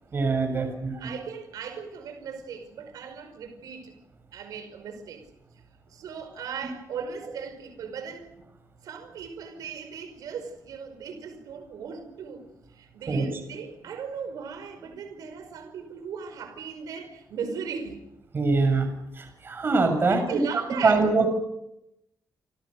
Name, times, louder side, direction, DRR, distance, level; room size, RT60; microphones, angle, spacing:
voice 1, 0.1-1.1 13.1-13.3 18.3-18.9 19.1-20.4 20.8-21.3, right 3 dB, 35° right, 6 dB, 7.1 m, -23 dB
voice 2, 1.0-3.9 4.3-5.3 5.9-8.3 8.8-18.1 20.1-21.1, right 6 dB, 90° right, 7 dB, 5.3 m, -38 dB
30.0 x 26.5 x 6.6 m, 0.85 s
cardioid pair, 140°, 6 cm